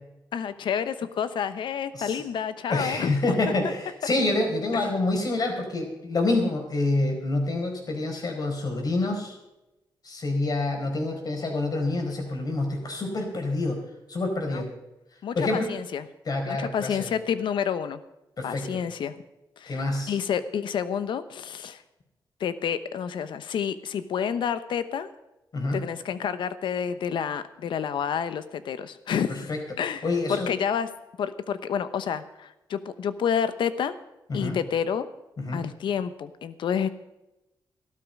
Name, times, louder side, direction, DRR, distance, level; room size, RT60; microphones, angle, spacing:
voice 1, 0.3-3.1 4.7-4.8 14.5-14.6 15.2-16.1 16.5-18.0 18.4-19.2 19.6-21.8 22.4-25.1 25.7-30.0 30.3-30.9 31.2-33.9 34.3-35.1 35.5-36.9, left 8 dB, 80° left, 13 dB, 0.9 m, -29 dB
voice 2, 2.7-9.4 10.0-13.8 14.1-14.7 15.3-15.7 16.3-17.0 18.4-18.7 19.7-20.1 25.5-25.8 29.5-29.6 30.0-30.5 34.3-34.6 35.4-35.6, left 2 dB, 50° left, 3 dB, 4.5 m, -27 dB
14.5 x 12.5 x 5.3 m, 0.96 s
cardioid pair, 80°, 8 cm